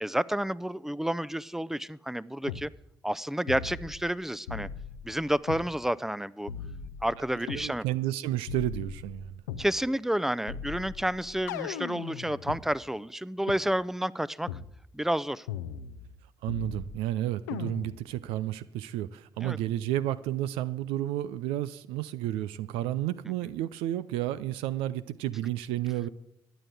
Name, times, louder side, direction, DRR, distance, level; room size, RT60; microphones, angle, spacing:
voice 1, 0.0-2.7 3.0-4.7 5.0-6.5 7.0-7.8 9.6-14.5 14.9-15.5 19.4-19.6, right 1 dB, 5° right, 20 dB, 0.6 m, -30 dB
sound 1, 2.5-2.7 3.5-4.1 4.5-5.7 6.5-7.7 8.5-9.7 10.5-12.6 13.5-13.6 14.5-14.7 15.5-16.2 16.5-17.1 17.5-18.1, left 7 dB, 90° left, 0.5 m, -39 dB
voice 2, 7.5-9.3 16.4-26.1, right 13 dB, 80° right, 15 dB, 0.4 m, -31 dB
12.5 x 9.2 x 8.1 m, 0.87 s
hypercardioid pair, 40°, 9 cm